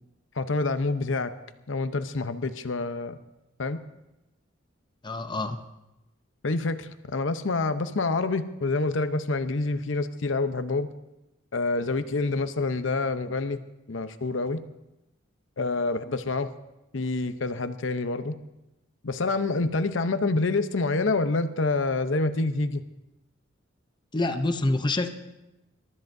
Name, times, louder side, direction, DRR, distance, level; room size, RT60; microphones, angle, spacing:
voice 1, 0.3-1.3 1.7-3.2 3.6-3.8 6.4-10.9 11.5-13.6 13.9-14.6 15.6-16.5 16.9-18.4 19.0-22.8, left 3 dB, 70° left, 10 dB, 0.8 m, -27 dB
voice 2, 5.0-5.6 24.1-25.1, left 2 dB, 25° left, 8 dB, 0.6 m, -26 dB
26.5 x 13.0 x 2.7 m, 0.94 s
head